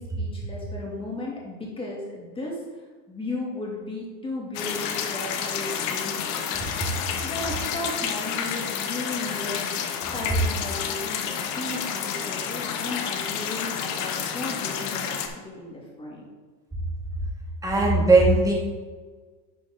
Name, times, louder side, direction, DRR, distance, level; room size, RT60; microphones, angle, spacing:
voice 1, 0.0-2.6 3.1-7.0 7.2-9.6 10.1-15.2 15.6-16.2, left 2 dB, 15° left, -3 dB, 2.7 m, -35 dB
sound 1, 4.5-15.3, left 7 dB, 55° left, 1.1 m, -30 dB
voice 2, 17.6-18.5, right 2 dB, 10° right, -2 dB, 1.9 m, -18 dB
11.0 x 5.1 x 3.8 m, 1.4 s
supercardioid pair, 130°, 35 cm